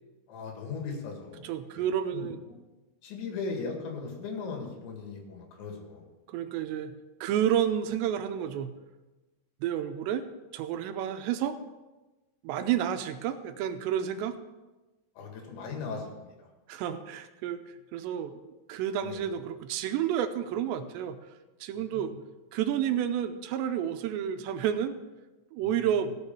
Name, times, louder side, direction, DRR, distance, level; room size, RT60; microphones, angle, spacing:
voice 1, 0.3-1.8 2.1-2.3 3.0-6.0 15.2-16.5 19.0-19.2 21.7-22.1 25.6-26.0, left 4 dB, 85° left, 2 dB, 4.3 m, -38 dB
voice 2, 1.4-2.4 6.3-6.9 7.2-8.7 9.6-10.2 10.5-11.6 12.4-14.4 16.7-17.6 17.9-21.2 21.6-22.1 22.5-24.9 25.5-26.1, right 9 dB, 80° right, 9 dB, 2.8 m, -30 dB
16.0 x 6.3 x 5.4 m, 1.1 s
omnidirectional pair, 5.1 m